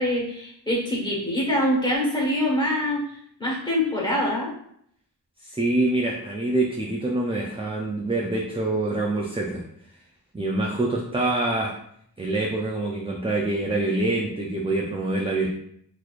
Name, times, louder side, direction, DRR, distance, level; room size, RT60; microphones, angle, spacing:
voice 1, 0.0-3.0 3.4-4.5, left 1 dB, 10° left, -4 dB, 1.4 m, -24 dB
voice 2, 5.4-9.6 10.3-11.7 12.2-15.5, right 2 dB, 15° right, -1 dB, 0.4 m, -25 dB
4.0 x 3.0 x 2.4 m, 0.69 s
wide cardioid pair, 70°, 40 cm